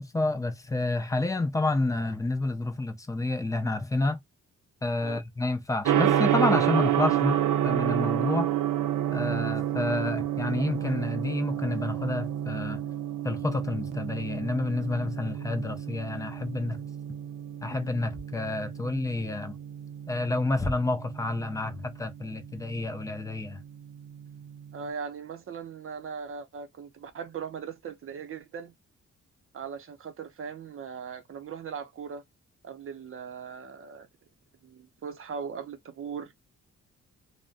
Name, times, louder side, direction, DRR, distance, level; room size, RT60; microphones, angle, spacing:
voice 1, 0.0-4.2 4.8-8.5 9.1-12.8 13.2-16.8 17.6-19.6 20.1-23.6, left 2 dB, 10° left, 0.3 m, -29 dB
Gong, 5.8-24.8, right 11 dB, 85° right, 0.6 m, -30 dB
voice 2, 24.7-28.7 29.5-32.2 32.6-34.1 34.6-36.3, right 6 dB, 45° right, 0.6 m, -39 dB
2.5 x 2.1 x 2.3 m
wide cardioid pair, 180°, 31 cm